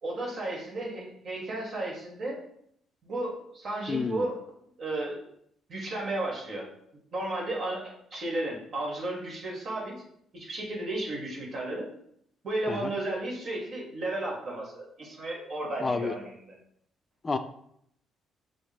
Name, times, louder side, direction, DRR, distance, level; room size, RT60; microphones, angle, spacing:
voice 1, 0.0-2.4 3.0-4.5 4.8-5.2 5.7-6.7 7.1-10.0 10.3-11.9 12.4-16.5, right 2 dB, 55° right, -2 dB, 1.5 m, -33 dB
voice 2, 3.9-4.3 12.7-12.9 15.8-16.1 17.2-17.4, left 4 dB, 30° left, 9 dB, 0.5 m, -29 dB
6.1 x 2.1 x 3.4 m, 0.70 s
supercardioid pair, 65°, 0 cm